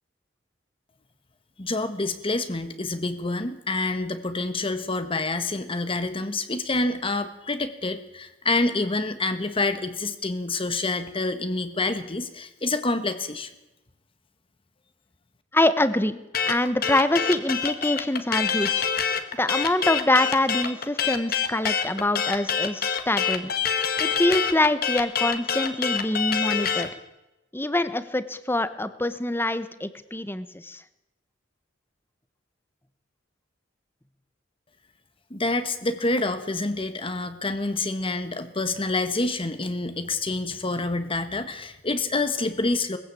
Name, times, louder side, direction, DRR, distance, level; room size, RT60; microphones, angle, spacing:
voice 1, 1.6-13.5 35.3-43.0, left 2 dB, 30° left, 9 dB, 1.5 m, -27 dB
voice 2, 15.5-16.2 16.5-18.9 19.4-23.5 24.0-26.9 27.5-30.8, left 1 dB, 10° left, 13 dB, 1.1 m, -25 dB
sound 1, 16.3-26.9, left 7 dB, 50° left, 1.8 m, -26 dB
21.0 x 15.5 x 8.4 m, 0.96 s
head